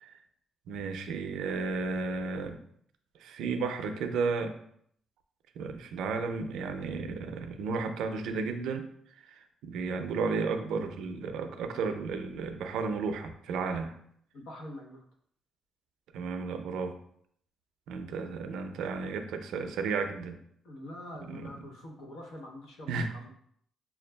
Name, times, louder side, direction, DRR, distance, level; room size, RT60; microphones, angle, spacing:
voice 1, 0.7-2.6 3.2-4.5 5.6-8.9 9.3-14.0 16.1-17.0 17.9-20.4 21.3-21.5 22.9-23.1, right 4 dB, 85° right, 7 dB, 0.4 m, -33 dB
voice 2, 14.3-15.0 20.6-23.3, left 1 dB, 85° left, 1 dB, 0.8 m, -45 dB
6.8 x 2.3 x 2.2 m, 0.67 s
cardioid pair, 90°, 0 cm